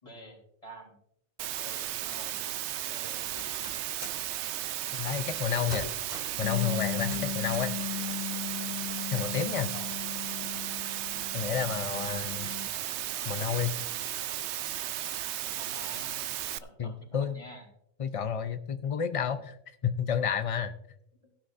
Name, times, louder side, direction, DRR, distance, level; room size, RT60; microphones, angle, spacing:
voice 1, 0.0-1.0 1.5-2.4 2.9-3.6 9.7-9.9 15.4-17.7 21.2-21.3, right 1 dB, 25° left, 0 dB, 3.8 m, -49 dB
Water, 1.4-16.6, right 12 dB, 65° right, 0.7 m, -35 dB
sound 1, 3.1-4.3 5.2-5.4 5.7-6.4 6.8-7.8, right 1 dB, 30° right, 2.4 m, -43 dB
voice 2, 4.9-5.9 6.4-7.7 9.1-9.7 11.3-12.5 13.3-13.8 16.8-17.4 18.0-20.7, left 7 dB, 60° left, 9 dB, 0.3 m, -30 dB
Bass guitar, 6.4-12.7, left 10 dB, 90° left, 1.2 m, -37 dB
16.5 x 10.0 x 2.6 m, 0.74 s
omnidirectional pair, 1.4 m